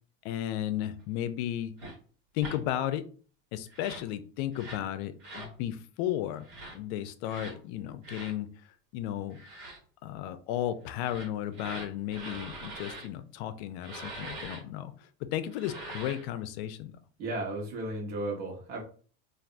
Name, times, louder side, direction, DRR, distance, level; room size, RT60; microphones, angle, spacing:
voice 1, 0.2-1.7 2.3-3.1 3.5-6.5 6.7-8.5 8.9-9.4 10.0-16.9, left 12 dB, 60° left, 11 dB, 0.5 m, -34 dB
sound 1, 1.8-2.0 2.4-2.6 3.7-4.1 4.5-4.9 5.2-5.5 6.4-6.8 7.3-7.6 8.0-8.3 9.3-9.8 10.9-13.1 13.8-14.6 15.5-16.3, right 2 dB, 70° right, 1.4 m, -43 dB
voice 2, 17.2-18.8, right 2 dB, 50° right, -1 dB, 1.1 m, -34 dB
3.3 x 2.6 x 2.5 m, 0.41 s
supercardioid pair, 135°, 36 cm